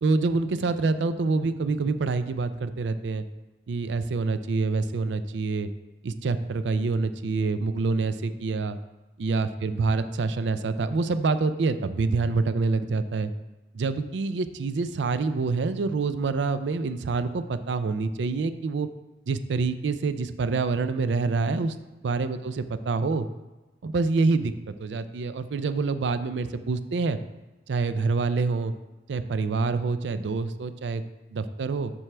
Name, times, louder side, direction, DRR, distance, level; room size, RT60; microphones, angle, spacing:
voice 1, 0.0-3.2 3.7-5.7 6.0-8.8 9.2-13.3 13.7-18.9 19.3-21.8 22.0-23.3 23.8-27.2 27.7-28.7 29.1-31.0 31.3-31.9, right 4 dB, 90° right, 11 dB, 0.4 m, -26 dB
7.4 x 6.1 x 3.3 m, 1.1 s
head